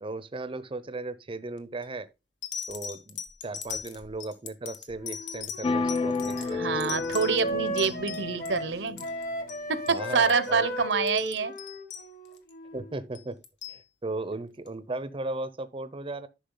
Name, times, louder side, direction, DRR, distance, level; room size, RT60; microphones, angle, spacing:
voice 1, 0.0-2.1 2.7-7.0 9.9-10.7 12.7-13.4 13.7-16.3, right 2 dB, 30° right, 0.6 m, -36 dB
sound 1, 1.6-1.9 2.4-8.6 8.9-9.6 9.9-10.0 10.3-10.5 10.9-12.5 13.1-13.8 14.7-14.8, left 7 dB, 80° left, 1.4 m, -39 dB
Wind instrument woodwind instrument, 5.0-13.0, left 1 dB, 55° left, 1.6 m, -36 dB
sound 2, 5.6-9.4, left 3 dB, 30° left, 0.4 m, -32 dB
voice 2, 6.5-9.0 9.7-11.5, right 5 dB, 80° right, 0.8 m, -26 dB
10.0 x 5.9 x 3.8 m
head